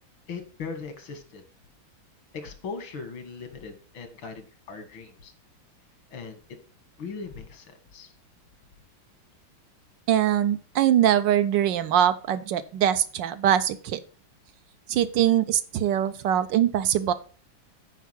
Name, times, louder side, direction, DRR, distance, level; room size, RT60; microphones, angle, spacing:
voice 1, 0.3-1.4 2.3-5.3 6.1-6.6 7.0-8.1, left 5 dB, 90° left, 8 dB, 2.4 m, -39 dB
voice 2, 10.1-14.0 14.9-17.1, right 11 dB, 75° right, 12 dB, 1.3 m, -22 dB
9.3 x 4.6 x 6.0 m, 0.39 s
omnidirectional pair, 2.1 m